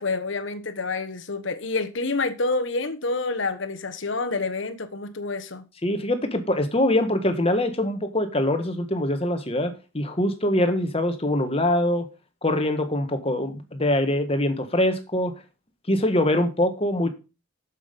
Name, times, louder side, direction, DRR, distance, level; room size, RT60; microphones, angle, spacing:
voice 1, 0.0-5.6, left 3 dB, 65° left, 1.3 m, -28 dB
voice 2, 5.8-12.1 12.4-15.3 15.9-17.1, left 1 dB, 30° left, 1.5 m, -23 dB
8.1 x 7.5 x 5.2 m
head